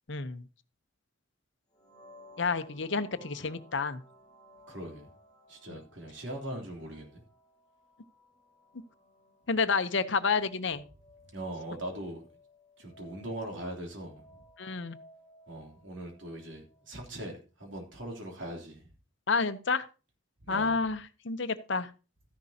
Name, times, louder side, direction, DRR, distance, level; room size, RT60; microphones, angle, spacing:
voice 1, 0.1-0.4 2.4-4.0 5.7-5.8 9.5-10.8 14.6-15.0 19.3-19.9 20.5-21.9, left 4 dB, 65° left, 11 dB, 0.9 m, -30 dB
sound 1, 1.7-17.4, left 1 dB, 20° left, 6.3 m, -59 dB
voice 2, 4.7-5.1 5.5-7.2 11.3-12.3 12.8-14.4 15.5-18.9 20.4-20.7, right 1 dB, 65° right, 2 dB, 3.3 m, -40 dB
13.5 x 10.5 x 2.9 m, 0.32 s
head